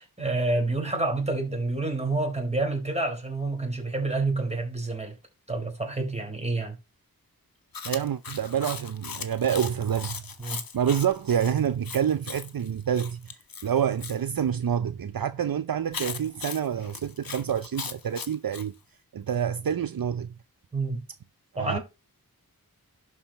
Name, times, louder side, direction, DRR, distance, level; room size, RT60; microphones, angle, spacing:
voice 1, 0.0-5.1 5.5-6.8 10.4-10.6 20.7-21.0 21.6-21.8, right 2 dB, 15° right, 4.1 m, -28 dB
Chewing mastication, 7.7-14.2 15.9-18.7, left 6 dB, 65° left, 1.2 m, -38 dB
voice 2, 7.8-10.2 10.7-13.3 13.6-18.7 19.1-20.3 21.5-21.8, right 8 dB, 65° right, 0.7 m, -27 dB
11.5 x 4.9 x 5.6 m
wide cardioid pair, 95°, 37 cm